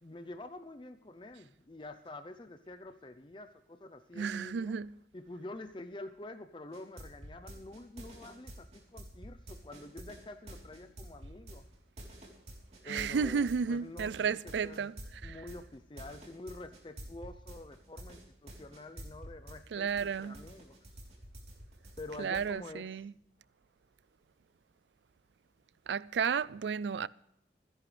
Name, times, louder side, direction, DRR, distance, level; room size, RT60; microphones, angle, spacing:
voice 1, 0.0-4.7 5.1-11.7 12.8-14.9 15.2-20.8 22.0-22.9, left 2 dB, 25° left, 0.6 m, -47 dB
voice 2, 4.1-5.0 12.8-15.5 19.7-20.4 22.2-23.1 25.9-27.1, right 6 dB, 85° right, 0.4 m, -33 dB
sound 1, 6.7-19.6 19.9-22.5, equal, 40° right, 3.6 m, -48 dB
26.5 x 11.0 x 3.3 m
head